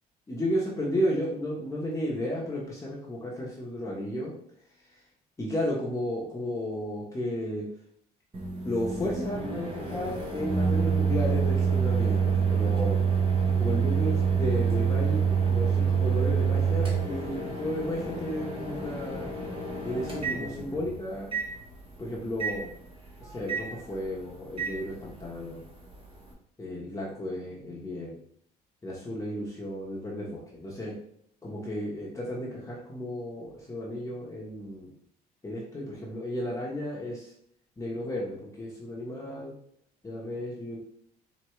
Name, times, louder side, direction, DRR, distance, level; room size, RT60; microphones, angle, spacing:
voice 1, 0.3-4.3 4.8-5.0 5.4-7.6 8.6-13.0 13.6-19.2 19.8-21.3 22.0-22.7 23.2-25.7 26.6-28.2 28.8-30.9 31.4-34.9 35.4-37.3 37.8-39.5 40.0-40.8, left 1 dB, 15° left, -5 dB, 1.0 m, -33 dB
Microwave oven, 8.3-20.9 21.3-21.5 22.4-22.6 23.5-23.7 24.6-24.7, right 6 dB, 30° right, 1.1 m, -27 dB
4.4 x 2.9 x 3.2 m, 0.69 s
cardioid pair, 110°, 17 cm